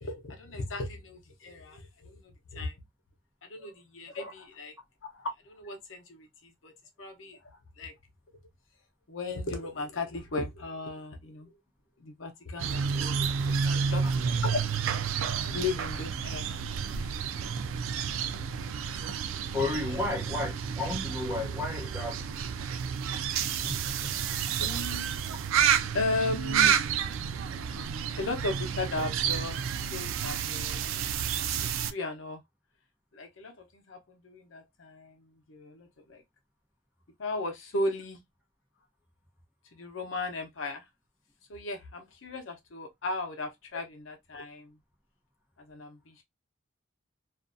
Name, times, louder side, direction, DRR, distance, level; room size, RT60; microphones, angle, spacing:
voice 1, 0.0-2.7 3.4-4.7 5.0-6.7 7.0-8.0 9.1-11.5 12.0-14.6 15.4-16.6 16.9-17.1 18.9-19.0 24.6-25.2 25.9-26.8 28.2-31.1 31.6-32.4 33.1-36.2 37.2-38.2 39.7-40.8 41.5-44.8 45.6-46.2, left 2 dB, 80° left, 0.7 m, -36 dB
sound 1, 12.6-31.9, right 7 dB, 85° right, 0.3 m, -30 dB
voice 2, 19.5-22.2 23.6-24.2, left 2 dB, 10° right, 0.7 m, -33 dB
2.5 x 2.2 x 2.5 m
head